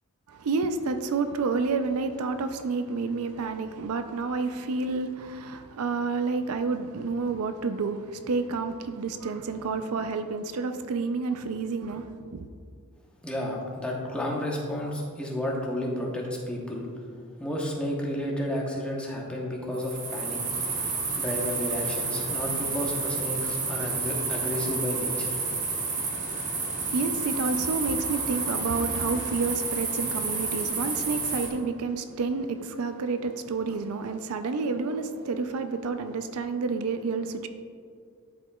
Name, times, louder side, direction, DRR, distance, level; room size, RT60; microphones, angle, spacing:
voice 1, 0.3-12.5 26.8-37.5, right 4 dB, 80° right, 9 dB, 0.4 m, -29 dB
voice 2, 13.2-16.9 17.4-20.4 21.2-25.4, left 1 dB, 5° left, -2 dB, 0.9 m, -31 dB
sound 1, 19.7-31.5, right 4 dB, 35° right, 1.0 m, -30 dB
11.5 x 5.0 x 2.3 m, 2.2 s
head